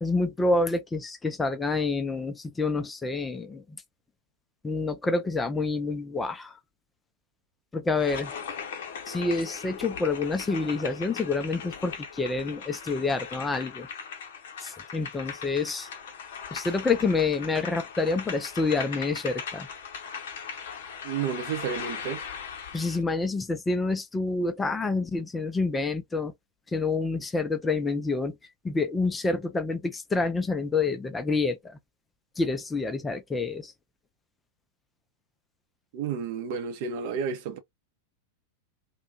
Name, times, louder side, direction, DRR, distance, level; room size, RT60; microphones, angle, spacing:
voice 1, 0.0-3.8 4.6-6.6 7.7-8.3 9.1-13.9 14.6-15.9 16.5-19.7 22.7-26.3 26.7-28.4 28.6-31.6 32.4-33.7, left 3 dB, 15° left, 0.4 m, -28 dB
sound 1, 7.9-23.0, left 6 dB, 55° left, 0.8 m, -39 dB
voice 2, 21.0-22.2 35.9-37.6, right 7 dB, 50° right, 0.6 m, -31 dB
2.5 x 2.1 x 2.6 m
figure-of-eight pair, 90°, 0 cm